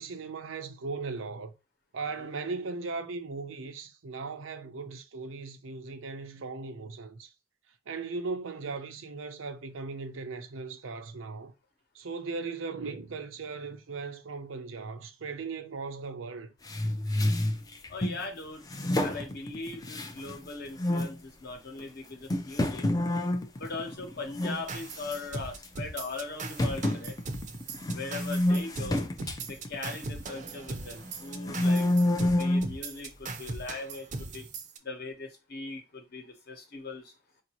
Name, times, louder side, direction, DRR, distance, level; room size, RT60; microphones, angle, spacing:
voice 1, 0.0-1.5 1.9-7.3 7.9-11.5 11.9-16.5, right 4 dB, 90° right, 0.6 m, -38 dB
sound 1, 16.7-18.2 18.7-20.4 20.8-21.2 21.8-21.9 22.3-24.6 24.9-25.3 25.6-25.7 26.6-30.6 31.1-32.7, left 1 dB, 20° left, 0.4 m, -29 dB
voice 2, 17.9-18.6 19.0-22.9 23.6-27.2 27.9-29.1 29.4-31.9 32.2-34.4 34.8-37.1, left 3 dB, 55° left, 1.0 m, -40 dB
sound 2, 24.7-34.8, right 3 dB, 40° right, 0.5 m, -39 dB
4.6 x 2.6 x 2.9 m
head